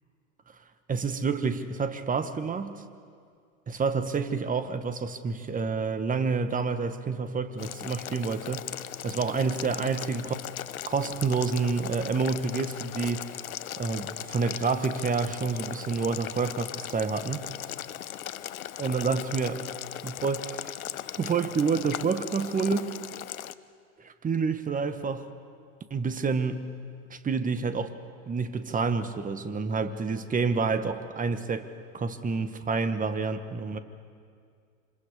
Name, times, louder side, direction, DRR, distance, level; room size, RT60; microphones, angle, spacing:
voice 1, 0.9-2.8 3.7-8.7 9.0-10.3 10.8-13.3 13.8-17.5 18.8-19.6 20.0-20.7 21.2-23.0 24.0-25.3 25.9-26.7 27.1-28.0 28.3-31.7 31.9-33.8, right 5 dB, 20° right, 10 dB, 1.5 m, -28 dB
Boiling, 7.6-23.5, left 11 dB, 80° left, 0.8 m, -38 dB
27.5 x 26.0 x 5.1 m, 2.2 s
hypercardioid pair, 95°, 41 cm